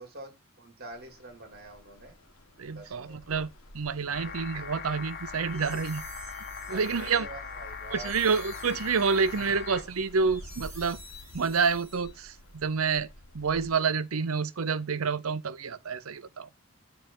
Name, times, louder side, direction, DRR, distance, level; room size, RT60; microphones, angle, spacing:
voice 1, 0.0-2.2 2.7-3.3 4.3-4.4 6.7-8.2, right 2 dB, 50° right, 2.6 m, -46 dB
sound 1, 0.9-13.8, left 1 dB, 80° left, 1.4 m, -51 dB
voice 2, 2.6-6.0 6.7-7.3 7.9-11.0 11.3-13.1 13.3-16.5, right 5 dB, 85° right, 0.7 m, -28 dB
sound 2, 4.1-9.8, left 6 dB, 50° left, 1.3 m, -40 dB
sound 3, 5.2-12.5, right 1 dB, 15° right, 6.2 m, -51 dB
9.6 x 3.4 x 6.1 m
head